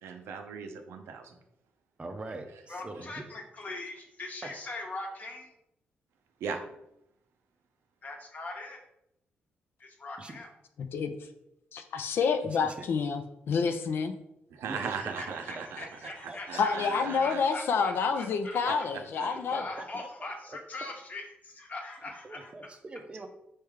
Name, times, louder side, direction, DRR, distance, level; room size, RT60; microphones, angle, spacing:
voice 1, 0.0-1.3 6.4-6.6 14.5-15.9 16.5-17.4 18.7-18.8, right 6 dB, 85° right, 5 dB, 0.6 m, -37 dB
voice 2, 2.0-3.2 4.4-4.6 10.2-10.4 12.5-12.7 14.7-16.6 19.4-20.3 22.2-23.3, right 2 dB, 25° right, 7 dB, 0.5 m, -43 dB
voice 3, 2.7-5.5 8.0-8.8 9.8-10.5 15.0-18.8 19.1-22.8, left 2 dB, 40° left, 2 dB, 1.0 m, -41 dB
voice 4, 10.8-11.1 11.7-14.1 16.5-19.6, left 5 dB, 65° left, 7 dB, 0.5 m, -28 dB
4.3 x 3.2 x 3.6 m, 0.81 s
cardioid pair, 95°, 4 cm